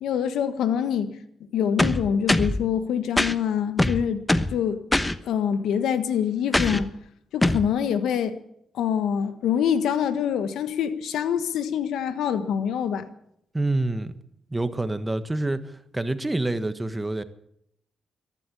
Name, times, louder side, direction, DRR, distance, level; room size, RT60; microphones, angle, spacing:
voice 1, 0.0-1.1 1.5-4.2 4.5-4.8 5.3-6.9 7.3-8.4 8.7-13.1, left 8 dB, 85° left, 1.3 m, -25 dB
sound 1, 1.8-2.6 3.2-3.3 3.8-4.6 4.9-5.1 6.5-6.9 7.4-7.7, left 1 dB, 15° left, 1.1 m, -22 dB
voice 2, 13.5-14.1 14.5-17.2, right 2 dB, 15° right, 1.4 m, -27 dB
14.5 x 11.5 x 8.5 m
supercardioid pair, 60°, 0 cm